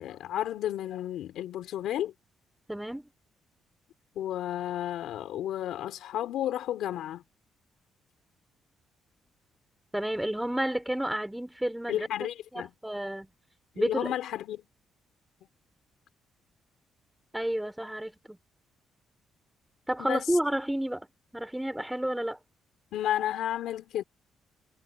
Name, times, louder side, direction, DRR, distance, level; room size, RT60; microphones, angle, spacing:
voice 1, 0.0-2.1 4.1-7.2 11.9-12.7 13.7-14.6 20.0-20.4 22.9-24.0, left 12 dB, 80° left, 3.1 m, -32 dB
voice 2, 2.7-3.1 9.9-13.3 13.8-14.1 17.3-18.4 19.9-21.1 21.3-22.4, right 1 dB, 5° right, 3.7 m, -31 dB
cardioid pair, 90°, 0 cm